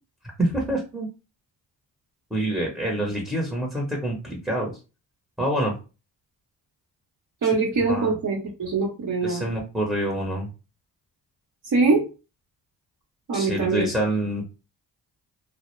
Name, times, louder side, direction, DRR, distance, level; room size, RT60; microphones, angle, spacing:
voice 1, 0.4-1.1 2.3-4.8 5.4-5.7 7.4-7.5 7.9-8.1 9.2-10.5 13.3-14.5, right 1 dB, ahead, -1 dB, 0.9 m, -26 dB
voice 2, 7.4-9.4 11.7-12.0 13.3-13.8, right 3 dB, 50° right, -2 dB, 0.9 m, -23 dB
2.2 x 2.1 x 3.1 m, 0.32 s
supercardioid pair, 55°, 42 cm